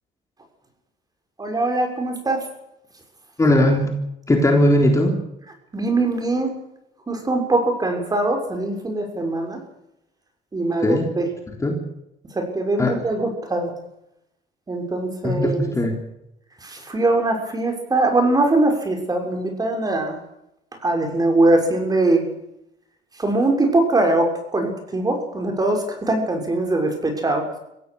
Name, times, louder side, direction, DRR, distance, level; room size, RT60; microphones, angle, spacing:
voice 1, 1.4-2.5 5.7-6.5 7.1-9.6 10.5-11.3 12.3-13.7 14.7-15.7 16.6-20.2 20.8-22.2 23.2-27.5, right 2 dB, 20° right, 4 dB, 6.6 m, -21 dB
voice 2, 3.4-3.9 4.3-5.2 10.8-11.1 11.6-11.8 12.8-12.9 15.2-16.0, left 1 dB, 20° left, 2 dB, 3.8 m, -18 dB
24.5 x 16.5 x 6.5 m, 0.83 s
cardioid pair, 110°, 17 cm